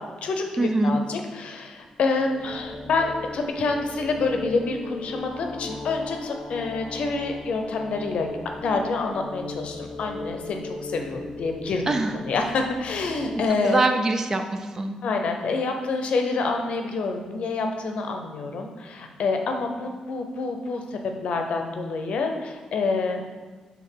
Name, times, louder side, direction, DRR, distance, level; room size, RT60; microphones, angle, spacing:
voice 1, 0.0-8.3 8.6-12.0 12.3-13.8 15.0-23.2, left 3 dB, 70° left, 4 dB, 0.6 m, -27 dB
voice 2, 0.6-1.0 11.9-12.1 13.5-15.0, right 2 dB, 25° right, 6 dB, 0.4 m, -23 dB
sound 1, 1.9-13.5, left 2 dB, 30° left, 0.6 m, -38 dB
6.0 x 3.5 x 4.5 m, 1.3 s
wide cardioid pair, 160°, 2 cm